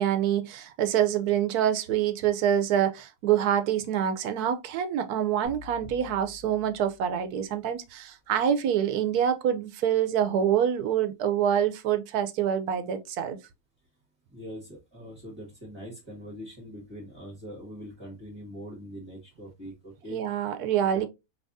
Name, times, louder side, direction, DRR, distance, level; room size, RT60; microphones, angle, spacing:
voice 1, 0.0-13.4 20.1-21.1, right 9 dB, 85° right, 1.2 m, -26 dB
sound 1, 5.4-7.6, left 7 dB, 70° left, 1.9 m, -48 dB
voice 2, 14.3-20.2 20.9-21.1, equal, 20° right, 1.6 m, -42 dB
4.6 x 3.5 x 2.6 m
omnidirectional pair, 1.6 m